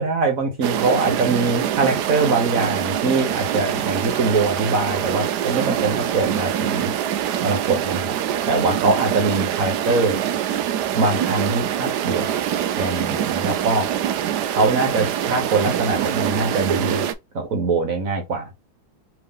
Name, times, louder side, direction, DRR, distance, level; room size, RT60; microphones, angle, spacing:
voice 1, 0.0-6.9 7.4-8.2 8.5-10.2 10.9-12.3 12.8-13.9 14.5-17.1 17.3-18.5, right 3 dB, 55° right, 1.0 m, -22 dB
sound 1, 0.6-17.1, right 10 dB, 80° right, 0.9 m, -24 dB
3.6 x 3.3 x 3.5 m
omnidirectional pair, 2.3 m